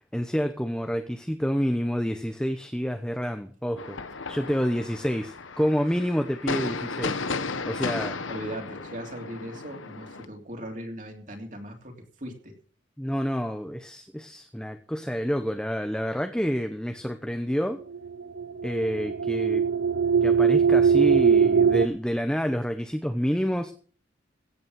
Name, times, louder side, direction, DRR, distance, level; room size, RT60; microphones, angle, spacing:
voice 1, 0.1-7.2 7.7-8.2 13.0-17.8 18.6-19.6 20.2-23.7, equal, 5° left, 7 dB, 0.9 m, -28 dB
sound 1, 3.8-10.3, left 4 dB, 85° left, 1.2 m, -34 dB
voice 2, 8.3-12.5, right 1 dB, 40° right, 3 dB, 3.2 m, -39 dB
sound 2, 17.9-21.9, right 6 dB, 70° right, 0.7 m, -21 dB
16.5 x 8.6 x 6.4 m, 0.43 s
head